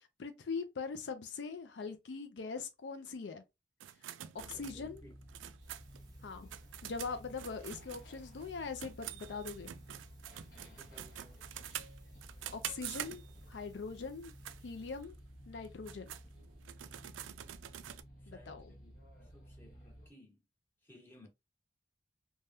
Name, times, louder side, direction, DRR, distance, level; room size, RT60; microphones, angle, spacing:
voice 1, 0.0-3.4 4.4-5.0 6.2-6.5 6.8-9.7 12.5-13.2 13.5-14.3 14.6-15.1 15.5-16.1 18.3-18.7, left 4 dB, 65° left, 0.4 m, -42 dB
sound 1, 3.8-8.5 8.8-13.5 14.1-14.6 15.0-15.1 15.6-18.0, right 11 dB, 85° right, 0.3 m, -46 dB
sound 2, 4.4-20.1, equal, 50° left, 1.0 m, -55 dB
voice 2, 4.5-5.1 7.4-7.5 10.6-11.5 18.2-20.4 20.8-21.3, left 1 dB, 10° left, 1.1 m, -60 dB
sound 3, 5.6-15.0, equal, 20° right, 0.7 m, -62 dB
3.3 x 2.2 x 2.6 m
head